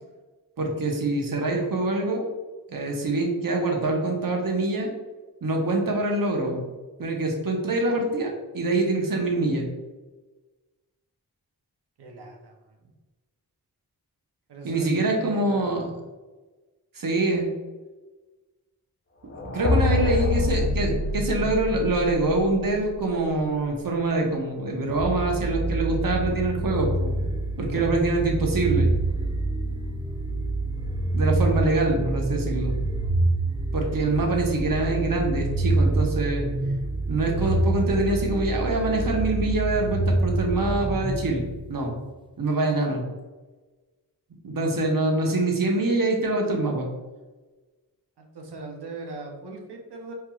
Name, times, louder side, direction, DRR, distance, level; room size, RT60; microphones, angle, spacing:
voice 1, 0.6-2.3 2.7-4.9 5.4-6.7 7.0-9.7 14.6-15.9 16.9-17.5 19.4-27.1 27.6-28.9 31.1-32.8 33.7-36.5 37.1-41.4 41.7-41.9 42.4-43.0 44.4-46.9, right 2 dB, 60° right, 1 dB, 1.0 m, -25 dB
voice 2, 12.0-12.6 14.5-16.0 19.6-20.3 48.2-50.1, right 3 dB, 90° right, 1 dB, 0.7 m, -39 dB
sound 1, 19.3-23.3, left 2 dB, 35° left, 0.6 m, -26 dB
sound 2, 24.9-41.8, right 2 dB, 15° right, 0.3 m, -26 dB
4.5 x 3.0 x 2.3 m, 1.2 s
cardioid pair, 40°, 39 cm